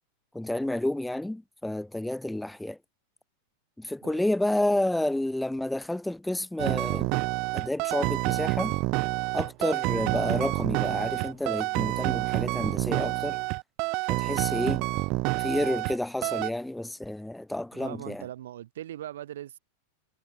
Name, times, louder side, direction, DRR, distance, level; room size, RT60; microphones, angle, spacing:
voice 1, 0.3-2.8 3.8-7.2 7.5-8.8 9.3-13.4 14.1-14.9 15.4-18.2, left 1 dB, 5° left, 6.1 m, -30 dB
sound 1, 6.6-16.0 16.2-16.5, right 27 dB, 40° right, 0.7 m, -28 dB
voice 2, 17.7-19.6, right 12 dB, 60° right, 7.3 m, -40 dB
figure-of-eight pair, 90°, 0 cm